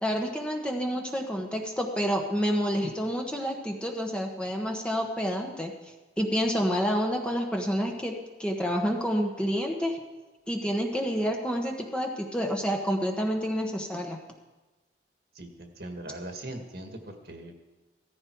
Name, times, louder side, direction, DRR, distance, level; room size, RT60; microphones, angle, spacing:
voice 1, 0.0-5.7 6.2-8.1 8.4-10.0 10.5-14.2, equal, 5° left, 1 dB, 1.2 m, -28 dB
voice 2, 15.3-17.6, right 1 dB, 60° right, 4 dB, 1.8 m, -40 dB
16.5 x 14.0 x 4.7 m, 1.2 s
head